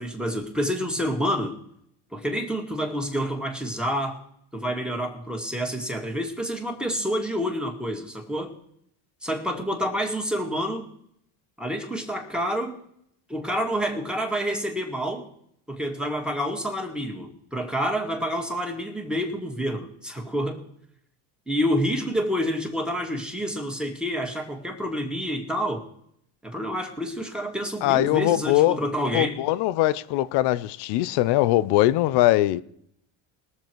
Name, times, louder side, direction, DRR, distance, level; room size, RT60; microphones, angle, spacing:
voice 1, 0.0-1.5 2.1-4.2 4.5-8.5 9.2-10.9 11.6-12.8 13.3-15.3 15.7-20.6 21.5-25.8 26.4-29.4, equal, ahead, 2.1 m, -28 dB
voice 2, 27.8-28.8 29.1-32.6, left 16 dB, 70° left, 0.8 m, -21 dB
21.0 x 7.1 x 4.6 m
cardioid pair, 130°, 42 cm